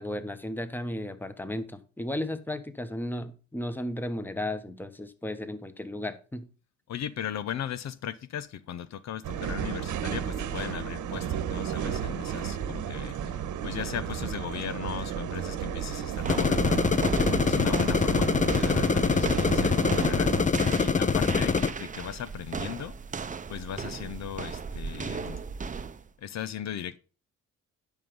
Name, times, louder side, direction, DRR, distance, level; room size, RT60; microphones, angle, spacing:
voice 1, 0.0-6.5, left 1 dB, 5° left, 1.1 m, -34 dB
voice 2, 6.9-16.8 17.2-20.3 20.8-22.9 23.5-25.4 26.2-27.0, left 10 dB, 65° left, 0.7 m, -37 dB
sound 1, 9.2-20.5, right 8 dB, 80° right, 1.4 m, -33 dB
sound 2, 16.2-26.1, right 5 dB, 25° right, 0.7 m, -37 dB
sound 3, 16.3-21.7, left 5 dB, 25° left, 0.7 m, -24 dB
11.0 x 5.5 x 5.2 m
cardioid pair, 90°, 30 cm